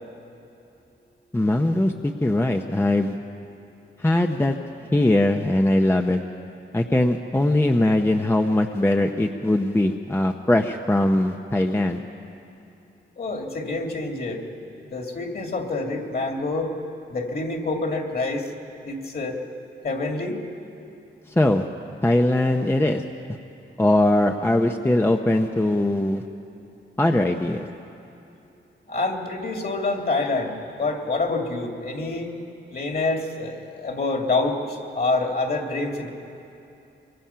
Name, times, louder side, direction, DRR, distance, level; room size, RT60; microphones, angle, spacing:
voice 1, 1.3-3.2 4.0-4.6 4.9-6.2 6.7-12.0 21.3-21.7 22.0-23.0 23.8-26.2 27.0-27.7, left 1 dB, 10° left, 4 dB, 0.7 m, -21 dB
voice 2, 13.2-14.4 14.9-16.7 17.1-18.5 18.8-19.4 19.8-20.4 28.9-32.3 32.7-34.6 34.9-36.1, left 3 dB, 45° left, 2 dB, 2.4 m, -26 dB
24.0 x 24.0 x 5.7 m, 2.7 s
wide cardioid pair, 140°, 21 cm